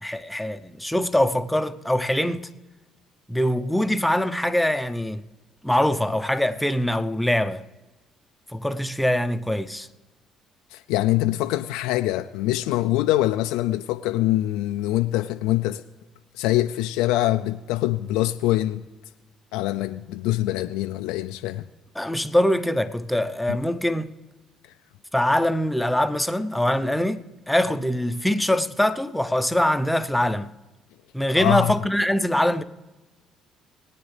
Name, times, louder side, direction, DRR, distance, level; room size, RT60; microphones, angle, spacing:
voice 1, 0.0-2.5 3.3-5.3 5.6-7.6 8.5-9.9 22.0-24.2 25.1-30.6 31.1-32.6, left 1 dB, 5° left, 0.8 m, -23 dB
voice 2, 10.7-15.8 16.3-18.8 19.5-21.7 22.0-22.1 23.5-23.6 24.6-24.7 31.4-31.7, left 15 dB, 80° left, 0.3 m, -24 dB
21.0 x 9.2 x 3.3 m
hypercardioid pair, 60°, 0 cm